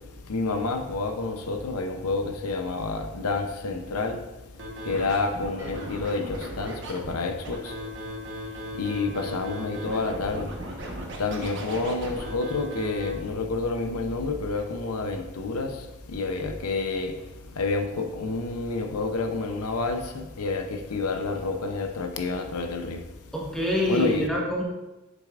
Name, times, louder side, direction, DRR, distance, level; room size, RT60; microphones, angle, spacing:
voice 1, 0.3-4.2 4.9-7.7 8.8-10.5 11.2-15.8 16.1-17.2 17.6-23.0 23.9-24.3, left 3 dB, 90° left, 0.7 m, -29 dB
Scratching (performance technique), 4.6-13.1, equal, 55° right, 1.1 m, -37 dB
voice 2, 23.3-24.6, equal, ahead, 1.1 m, -25 dB
7.5 x 6.7 x 2.5 m
head